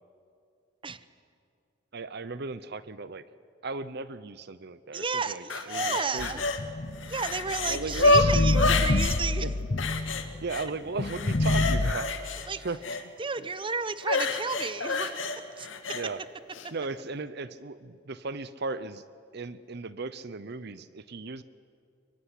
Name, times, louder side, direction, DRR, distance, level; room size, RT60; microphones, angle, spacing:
voice 1, 1.9-3.2 3.6-6.4 7.6-8.3 9.4-9.5 10.4-12.1 12.5-13.0 13.4-13.5 15.9-16.2 16.7-19.0 19.3-21.4, right 3 dB, 60° right, 14 dB, 0.8 m, -36 dB
voice 2, 4.9-6.4 7.1-9.5 12.5-12.6 13.2-16.0, right 4 dB, 25° right, 13 dB, 1.0 m, -32 dB
sound 1, 5.5-6.6 6.9-9.2 9.8-10.7 11.0-13.0 14.0-16.0 16.5-16.7, left 2 dB, 85° left, 2.3 m, -28 dB
sound 2, 6.2-10.5 11.0-11.9, left 2 dB, 40° left, 0.6 m, -27 dB
24.5 x 23.5 x 10.0 m, 2.4 s
head